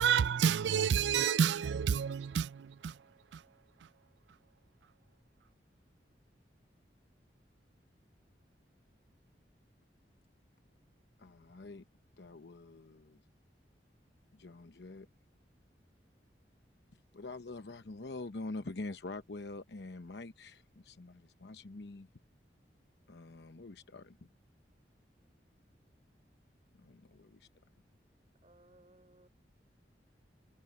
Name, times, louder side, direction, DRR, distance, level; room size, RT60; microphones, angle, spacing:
voice 1, 0.0-2.9 3.3-3.4, right 7 dB, 90° right, 0.4 m, -29 dB
voice 2, 11.2-11.8 12.2-13.2 14.3-15.1 17.1-22.1 23.1-24.3 26.8-27.5, left 2 dB, 75° left, 0.9 m, -45 dB
voice 3, 28.4-29.3, right 1 dB, 35° right, 5.9 m, -62 dB
head